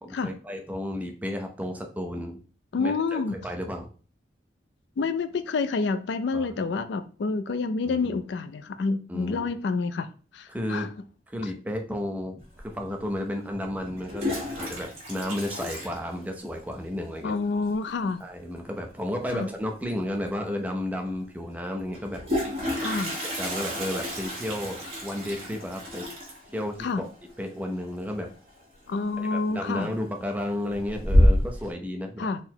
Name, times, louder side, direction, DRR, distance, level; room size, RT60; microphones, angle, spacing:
voice 1, 0.0-2.4 2.8-3.9 6.3-6.5 7.9-8.2 9.1-9.5 10.5-10.9 11.3-17.3 18.2-22.2 23.4-26.1 26.5-27.0 27.4-28.3 29.2-32.3, left 1 dB, 10° right, 3 dB, 0.5 m, -33 dB
voice 2, 2.7-3.3 5.0-10.1 10.3-10.9 17.2-18.2 19.3-19.5 22.8-23.1 26.8-27.0 28.9-29.9 32.2-32.4, left 4 dB, 65° left, 11 dB, 0.3 m, -28 dB
Toilet flush, 12.6-12.7 13.8-16.7 16.9-17.0 17.3-17.4 17.7-18.1 19.8-19.9 20.2-20.3 21.9-28.6 28.9-29.3 29.7-30.3 30.7-31.7, left 1 dB, 35° right, 1.2 m, -28 dB
3.9 x 2.1 x 4.4 m, 0.39 s
head